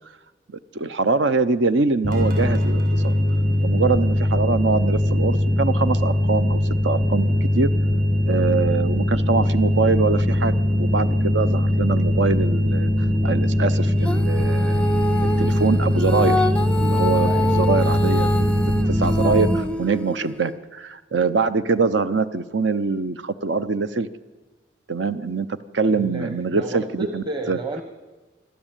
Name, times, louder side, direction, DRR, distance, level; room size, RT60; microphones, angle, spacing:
voice 1, 0.7-3.1 3.6-7.7 8.2-14.8 15.4-16.5 16.8-18.5 18.9-24.1 24.9-27.6, right 4 dB, 75° right, 13 dB, 0.8 m, -23 dB
sound 1, 2.0-19.5, left 1 dB, 50° right, 6.8 m, -21 dB
Female singing, 14.0-20.5, left 1 dB, 5° left, 0.6 m, -27 dB
voice 2, 17.2-17.5 25.9-27.8, right 2 dB, 25° right, 6 dB, 1.2 m, -31 dB
25.5 x 12.5 x 9.0 m, 1.3 s
head